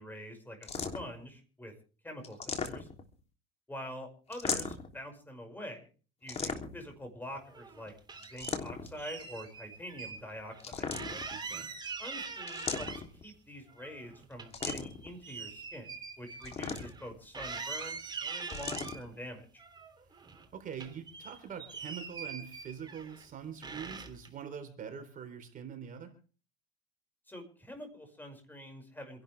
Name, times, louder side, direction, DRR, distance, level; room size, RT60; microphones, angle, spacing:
voice 1, 0.0-1.7 2.0-2.9 3.7-5.9 6.2-7.9 8.2-10.9 12.0-12.9 13.2-15.9 16.2-19.6 27.3-29.2, equal, 10° left, 5 dB, 6.0 m, -45 dB
sound 1, 0.6-1.2 2.2-3.1 4.3-4.9 6.3-6.9 8.2-9.0 10.6-11.4 12.5-13.2 14.5-15.1 16.4-17.1 18.5-19.0, left 5 dB, 30° left, 3.3 m, -37 dB
sound 2, 7.5-8.5 9.0-10.2 10.5-10.6 10.9-13.3 13.7-17.1 17.3-19.0 19.6-20.5 20.7-23.3 23.6-24.3, right 5 dB, 20° right, 3.0 m, -43 dB
voice 2, 11.3-11.7 20.1-26.1, right 7 dB, 40° right, 7 dB, 3.9 m, -44 dB
27.0 x 12.0 x 3.5 m, 0.38 s
supercardioid pair, 105°, 20 cm